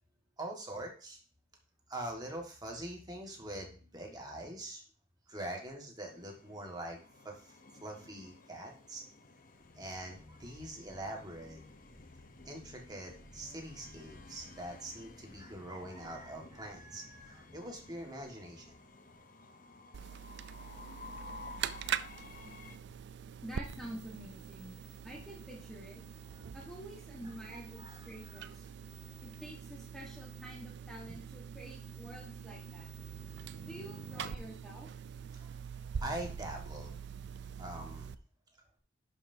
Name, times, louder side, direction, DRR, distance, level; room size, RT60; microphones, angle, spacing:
voice 1, 0.4-1.2 1.9-4.8 5.3-7.0 7.2-7.6 7.8-9.1 9.7-11.6 12.4-18.8 26.3-26.5 27.2-28.5 35.3-35.5 35.9-37.0 37.6-38.1, right 1 dB, 20° right, 1 dB, 1.6 m, -44 dB
Train, 6.0-22.8, left 3 dB, 45° left, 0.8 m, -54 dB
sound 1, 9.4-19.2, left 1 dB, 80° left, 1.5 m, -59 dB
sound 2, 19.9-38.1, right 7 dB, 65° right, 0.4 m, -44 dB
voice 2, 23.4-26.0 26.5-28.7 29.2-32.9 33.6-34.9, right 1 dB, ahead, -2 dB, 1.3 m, -48 dB
11.0 x 5.7 x 2.7 m, 0.39 s
head